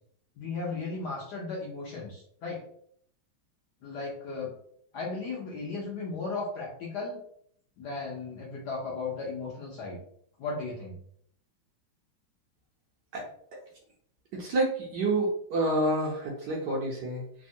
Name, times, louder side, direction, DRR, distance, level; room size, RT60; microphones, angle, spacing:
voice 1, 0.4-2.6 3.8-4.5 4.9-7.2 7.8-10.0 10.4-10.9, left 3 dB, 70° left, -3 dB, 1.0 m, -35 dB
voice 2, 14.3-17.2, right 2 dB, 70° right, -2 dB, 1.0 m, -28 dB
3.4 x 2.1 x 2.6 m, 0.65 s
omnidirectional pair, 2.2 m